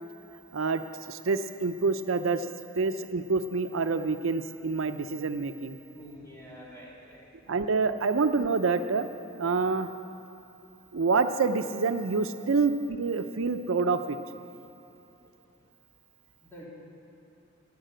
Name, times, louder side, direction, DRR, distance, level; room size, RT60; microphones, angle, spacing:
voice 1, 1.1-2.5 2.8-5.8 7.5-9.1 9.4-9.9 10.9-14.2, right 4 dB, 75° right, 9 dB, 0.5 m, -27 dB
voice 2, 5.9-7.3 16.4-16.7, equal, 15° left, -6 dB, 2.9 m, -47 dB
11.5 x 9.7 x 7.6 m, 3.0 s
head